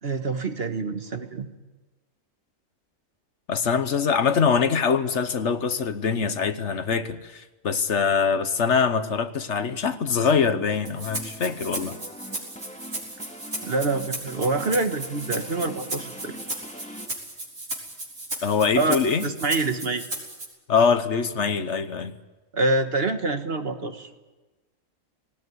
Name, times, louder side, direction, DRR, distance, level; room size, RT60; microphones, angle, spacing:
voice 1, 0.0-1.5 13.6-16.4 18.8-19.0 19.2-20.0 22.5-24.1, right 3 dB, 50° right, 1.6 m, -26 dB
voice 2, 3.5-12.0 18.4-19.3 20.7-22.1, left 6 dB, 65° left, 1.3 m, -23 dB
sound 1, 10.2-17.1, equal, 5° left, 1.8 m, -43 dB
Rattle (instrument), 10.9-20.5, right 2 dB, 75° right, 4.6 m, -35 dB
19.0 x 18.5 x 9.6 m
omnidirectional pair, 1.3 m